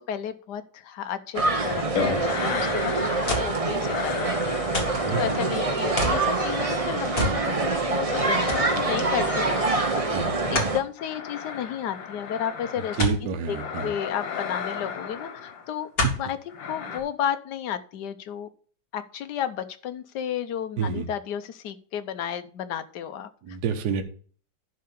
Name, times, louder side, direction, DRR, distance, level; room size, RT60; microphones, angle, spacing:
voice 1, 0.1-4.2 5.1-10.0 10.4-12.9 13.5-13.6 13.8-15.9 16.2-18.5 18.9-23.3, left 9 dB, 70° left, 10 dB, 1.4 m, -32 dB
sound 1, 1.3-10.8, right 3 dB, 25° right, 0.8 m, -26 dB
sound 2, 1.9-3.5 3.8-13.1 13.5-15.8 16.5-17.0, left 6 dB, 85° left, 2.0 m, -34 dB
sound 3, 3.3-3.6 4.7-5.1 6.0-6.3 7.2-7.4 7.8-7.9 8.5-8.7 10.5-10.8 13.0-13.2 14.7-14.8 16.0-16.3 17.0-17.1, left 1 dB, 30° left, 2.1 m, -27 dB
voice 2, 13.0-13.9 16.0-16.1 20.8-21.1 23.4-24.0, right 6 dB, 65° right, 6 dB, 1.6 m, -28 dB
11.0 x 3.8 x 7.0 m, 0.43 s
omnidirectional pair, 2.0 m